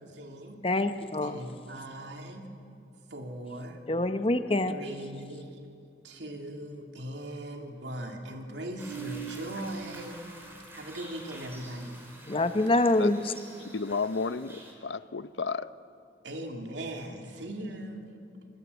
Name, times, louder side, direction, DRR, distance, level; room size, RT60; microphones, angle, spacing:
voice 1, 0.0-0.6 1.2-2.5 3.1-3.8 4.7-5.6 6.0-12.0 16.2-18.1, right 1 dB, 85° right, 3 dB, 2.8 m, -39 dB
voice 2, 0.6-1.4 3.9-4.7 12.3-13.2, left 2 dB, 30° left, 10 dB, 0.9 m, -25 dB
sound 1, 8.8-14.7, right 5 dB, 15° right, 4.0 m, -45 dB
voice 3, 13.7-15.7, left 4 dB, 85° left, 14 dB, 0.7 m, -32 dB
24.5 x 20.0 x 8.3 m, 2.5 s
head